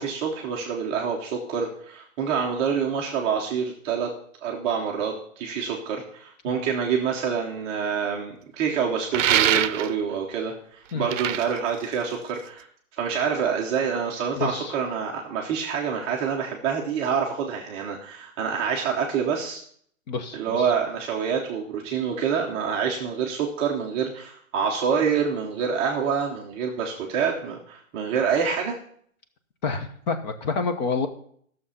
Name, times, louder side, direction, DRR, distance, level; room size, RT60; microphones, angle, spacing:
voice 1, 0.0-4.1 4.4-12.7 13.0-19.6 20.3-28.8, right 6 dB, 15° right, -2 dB, 0.6 m, -27 dB
sound 1, 9.1-10.1 10.9-12.6, right 10 dB, 65° right, 0.7 m, -24 dB
voice 2, 14.4-14.7 20.1-20.7 29.6-31.1, left 4 dB, 35° left, 8 dB, 1.0 m, -28 dB
12.5 x 6.6 x 5.6 m, 0.63 s
hypercardioid pair, 150°, 40 cm